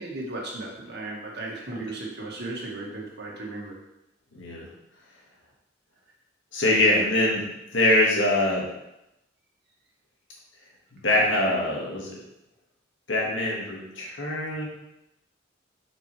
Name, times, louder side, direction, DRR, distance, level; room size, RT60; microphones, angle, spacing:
voice 1, 0.0-3.8 6.7-6.9, right 2 dB, 60° right, -2 dB, 1.8 m, -36 dB
voice 2, 4.3-4.7 6.5-7.4 7.7-8.7 11.0-12.2 13.1-14.7, left 1 dB, 75° left, -2 dB, 1.9 m, -23 dB
7.7 x 5.3 x 3.3 m, 0.88 s
head